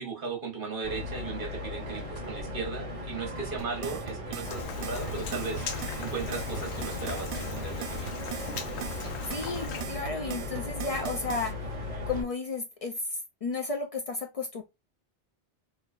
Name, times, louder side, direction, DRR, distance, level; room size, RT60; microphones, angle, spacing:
voice 1, 0.0-5.7 6.0-8.2, right 4 dB, 50° right, 1.2 m, -37 dB
sound 1, 0.8-12.2, left 1 dB, 30° right, 1.2 m, -37 dB
sound 2, 3.6-11.5, right 9 dB, 80° right, 0.9 m, -40 dB
Rain, 4.4-9.8, left 5 dB, 75° left, 0.9 m, -39 dB
voice 2, 9.3-11.5 12.1-13.0 13.4-14.6, left 4 dB, 55° left, 0.4 m, -33 dB
3.8 x 2.6 x 2.4 m
omnidirectional pair, 1.2 m